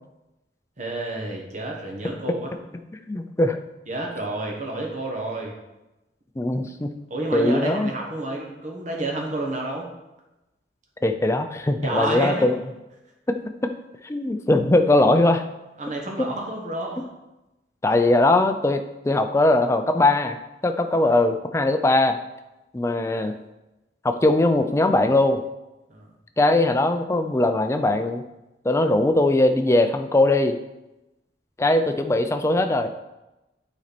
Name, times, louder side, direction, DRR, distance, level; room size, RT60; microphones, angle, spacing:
voice 1, 0.8-2.5 3.9-5.5 7.1-9.9 11.8-12.5 15.8-17.1 25.9-26.1, right 2 dB, 45° right, 0 dB, 1.4 m, -29 dB
voice 2, 3.1-3.6 6.4-6.9 7.3-7.9 11.0-12.6 13.3-13.7 14.0-15.4 16.2-16.3 17.8-20.4 20.6-22.2 22.7-23.4 24.0-25.4 26.4-28.2 28.6-30.6 31.6-32.9, left 2 dB, 15° left, 7 dB, 0.4 m, -20 dB
8.8 x 4.3 x 4.2 m, 0.98 s
head